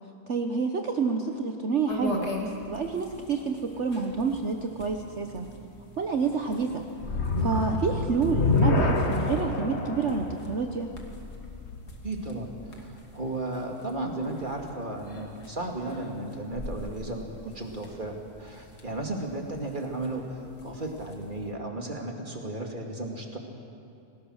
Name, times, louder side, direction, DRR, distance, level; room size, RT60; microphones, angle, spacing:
voice 1, 0.3-5.5 6.0-6.8 7.4-10.9, right 5 dB, 50° right, 4 dB, 1.3 m, -28 dB
sound 1, 1.9-21.5, left 2 dB, 85° left, 2.8 m, -43 dB
sound 2, 7.0-12.3, left 2 dB, 45° left, 1.8 m, -27 dB
voice 2, 7.4-7.7 12.0-23.4, right 2 dB, 30° right, 1 dB, 2.6 m, -34 dB
28.0 x 18.5 x 6.5 m, 2.7 s
omnidirectional pair, 1.7 m